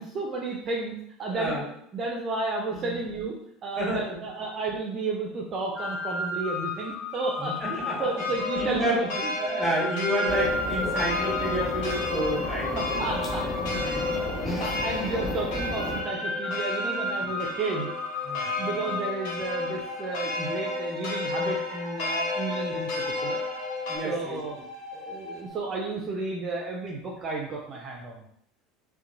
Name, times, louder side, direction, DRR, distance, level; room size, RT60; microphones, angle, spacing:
voice 1, 0.0-3.3 3.6-9.3 12.7-17.9 18.5-22.9 23.2-23.4 24.0-24.6 24.9-28.2, right 3 dB, 40° right, -2 dB, 0.4 m, -32 dB
voice 2, 1.3-1.6 2.7-3.0 3.8-4.2 7.4-8.2 8.6-9.0 9.4-12.8 13.7-14.4 17.2-17.3 18.2-18.7 23.9-24.4, right 1 dB, 5° right, -3 dB, 1.1 m, -30 dB
sound 1, 5.7-25.5, left 2 dB, 85° left, 1.1 m, -36 dB
sound 2, 8.2-24.0, left 2 dB, 60° left, 0.6 m, -32 dB
sound 3, 10.3-16.0, left 1 dB, 25° left, 0.6 m, -33 dB
2.7 x 2.1 x 2.5 m, 0.71 s
figure-of-eight pair, 70°, 0 cm